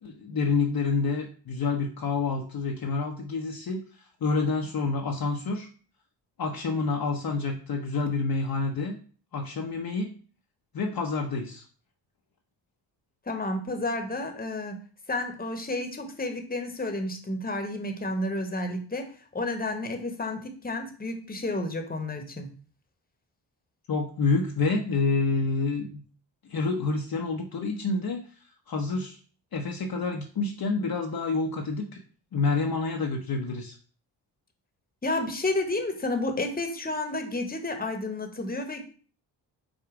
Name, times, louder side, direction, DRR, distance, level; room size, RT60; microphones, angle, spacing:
voice 1, 0.0-5.7 6.4-9.0 9.3-10.1 10.7-11.6 23.9-26.0 26.4-28.2 28.7-29.2 29.5-32.0 32.3-33.8, left 3 dB, 45° left, 2 dB, 0.8 m, -28 dB
voice 2, 13.3-14.8 15.1-22.5 35.0-38.8, left 2 dB, 20° left, 5 dB, 1.1 m, -31 dB
5.0 x 2.2 x 4.8 m, 0.41 s
supercardioid pair, 45°, 50 cm